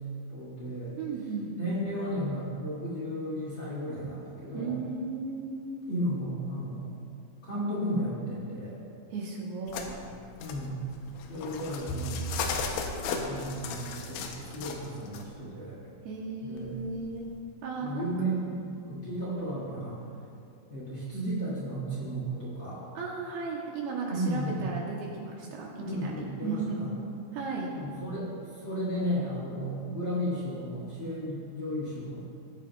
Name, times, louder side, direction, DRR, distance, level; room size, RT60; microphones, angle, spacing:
voice 1, 0.3-1.0 1.6-4.7 5.9-7.0 7.4-8.8 10.4-10.8 11.3-12.2 13.0-15.8 16.4-16.7 17.8-20.0 20.7-22.8 24.1-24.6 25.8-26.9 27.7-32.2, equal, 35° left, -8 dB, 2.3 m, -34 dB
voice 2, 1.0-1.5 4.5-5.7 9.1-10.0 16.0-17.3 17.6-18.7 22.9-26.9 27.3-27.7, right 4 dB, 75° right, -2 dB, 2.6 m, -35 dB
sound 1, 9.7-15.2 16.6-17.4, left 5 dB, 90° left, 3.1 m, -37 dB
Bowed string instrument, 11.9-18.2, right 3 dB, 70° left, 3.8 m, -44 dB
20.0 x 8.9 x 2.3 m, 2.5 s
omnidirectional pair, 5.0 m